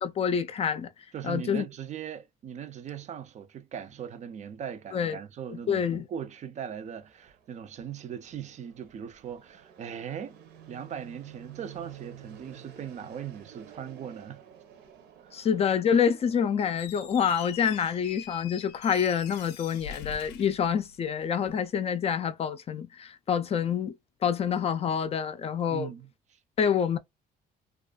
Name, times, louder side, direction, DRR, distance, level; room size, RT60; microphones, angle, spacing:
voice 1, 0.0-0.9 1.2-1.7 4.9-5.2 5.5-6.1 15.3-23.9 24.2-25.9 26.6-27.0, left 7 dB, 35° left, 0.4 m, -27 dB
voice 2, 1.1-14.4 15.2-15.5 25.7-26.4, right 8 dB, 45° right, 0.4 m, -39 dB
Fixed-wing aircraft airplane, 6.7-16.9, right 9 dB, 80° right, 0.7 m, -51 dB
Squeak, 16.7-21.3, left 8 dB, 90° left, 0.6 m, -44 dB
2.4 x 2.3 x 2.2 m
cardioid pair, 110°, 17 cm